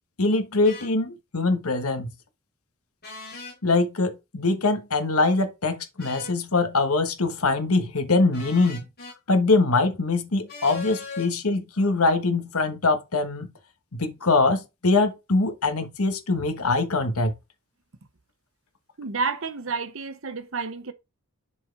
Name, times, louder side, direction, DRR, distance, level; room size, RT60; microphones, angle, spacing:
voice 1, 0.2-2.1 3.6-8.8 9.3-13.5 13.9-17.3, left 3 dB, 85° left, 1.4 m, -23 dB
sound 1, 0.6-0.9 3.0-3.6 6.0-6.4 8.3-9.2 10.5-11.3, left 3 dB, 45° left, 3.3 m, -38 dB
voice 2, 19.0-20.9, right 4 dB, 65° right, 0.9 m, -30 dB
7.5 x 4.4 x 3.4 m
head